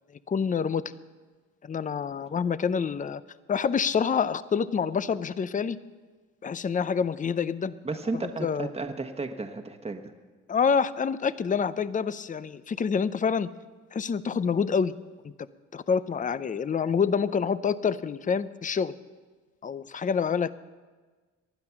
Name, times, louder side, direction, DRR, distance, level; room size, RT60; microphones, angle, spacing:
voice 1, 0.3-0.8 1.6-3.2 3.5-5.8 6.4-7.7 8.1-8.7 10.5-13.5 13.9-14.9 15.7-18.9 19.6-20.5, left 6 dB, 25° left, 15 dB, 0.6 m, -27 dB
voice 2, 7.8-10.1 20.0-20.1, right 3 dB, 20° right, 5 dB, 1.3 m, -33 dB
19.5 x 12.0 x 5.9 m, 1.4 s
cardioid pair, 90°, 30 cm